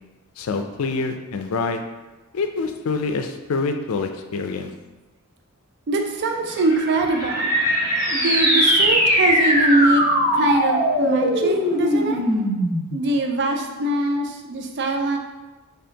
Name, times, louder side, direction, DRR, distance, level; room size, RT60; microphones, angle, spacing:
voice 1, 0.4-1.8 2.3-4.7, left 4 dB, 70° left, 6 dB, 0.4 m, -26 dB
voice 2, 5.9-12.5 12.9-15.2, right 2 dB, 55° right, 3 dB, 0.4 m, -23 dB
Livestock farm animals working animals, 6.4-12.2, equal, 15° right, 1.1 m, -29 dB
sound 1, 8.0-13.0, equal, 35° right, 1.2 m, -20 dB
4.3 x 3.4 x 2.8 m, 1.1 s
head